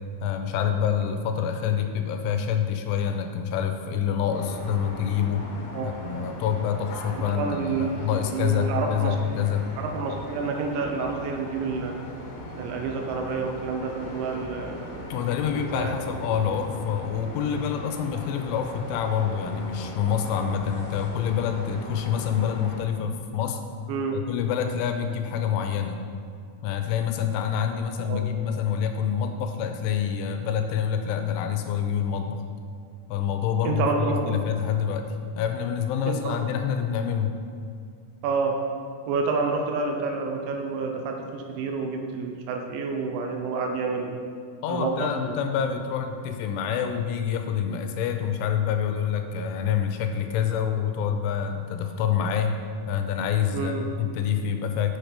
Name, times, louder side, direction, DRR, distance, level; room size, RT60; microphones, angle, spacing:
voice 1, 0.2-5.5 5.8-9.7 15.1-23.6 24.1-26.0 26.6-32.4 33.1-35.1 35.4-37.3 44.6-52.6 52.9-55.0, left 8 dB, 85° left, 6 dB, 3.1 m, -27 dB
sound 1, 4.3-22.8, left 1 dB, 70° left, 2.3 m, -39 dB
voice 2, 7.1-7.9 8.2-9.2 9.8-11.9 12.6-15.1 15.5-15.9 23.9-24.2 28.0-28.2 33.6-34.3 36.1-36.4 38.2-38.6 39.1-44.2 44.7-45.4 53.5-53.9, right 4 dB, 80° right, 3 dB, 2.9 m, -29 dB
7.8 x 6.6 x 5.1 m, 2.3 s
omnidirectional pair, 5.5 m